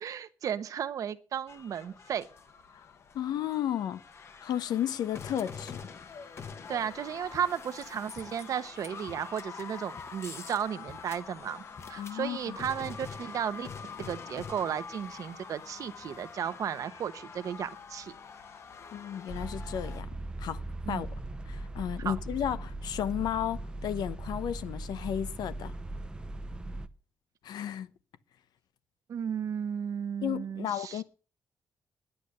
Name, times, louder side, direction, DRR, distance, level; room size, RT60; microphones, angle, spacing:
voice 1, 0.0-2.3 6.7-11.6 11.9-13.7 14.0-18.1 20.9-21.0 22.0-22.1 29.1-31.0, right 8 dB, 55° right, 1.0 m, -34 dB
sound 1, 1.5-20.0, left 5 dB, 40° left, 1.1 m, -45 dB
voice 2, 3.1-4.0 4.4-5.8 12.0-12.6 18.9-20.1 20.4-20.6 20.9-21.1 21.5-25.7 27.4-27.9 30.2-31.0, left 10 dB, 80° left, 0.9 m, -33 dB
sound 2, 19.3-26.9, right 2 dB, 15° right, 0.7 m, -39 dB
11.0 x 10.0 x 6.6 m
wide cardioid pair, 175°, 7 cm